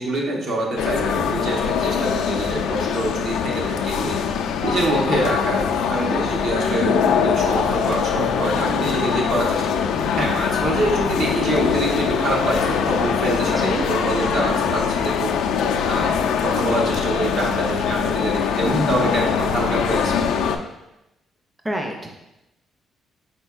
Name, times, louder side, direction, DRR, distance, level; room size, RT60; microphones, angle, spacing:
voice 1, 0.0-4.2 4.6-5.6 5.9-9.8 10.2-15.3 15.8-16.2 16.4-20.2, right 1 dB, 70° right, -1 dB, 1.0 m, -25 dB
sound 1, 0.8-20.6, left 7 dB, 90° left, 0.3 m, -22 dB
voice 2, 5.9-6.3 13.5-13.8 21.6-22.2, right 1 dB, 10° right, 2 dB, 0.5 m, -27 dB
4.4 x 4.3 x 2.4 m, 0.92 s
cardioid pair, 90°, 0 cm